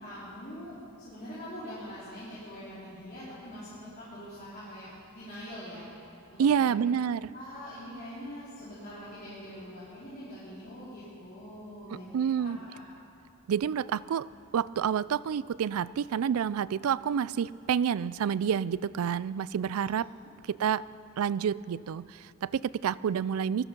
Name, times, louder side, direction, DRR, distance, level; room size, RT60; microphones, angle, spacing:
voice 1, 0.0-5.9 6.3-6.8 7.3-12.8 19.8-19.9, equal, 45° left, -12 dB, 4.0 m, -44 dB
voice 2, 6.4-7.3 11.9-12.6 13.5-14.3 14.5-20.1 20.5-20.8 21.2-23.7, right 8 dB, 90° right, 19 dB, 0.4 m, -28 dB
19.0 x 14.0 x 5.3 m, 2.6 s
head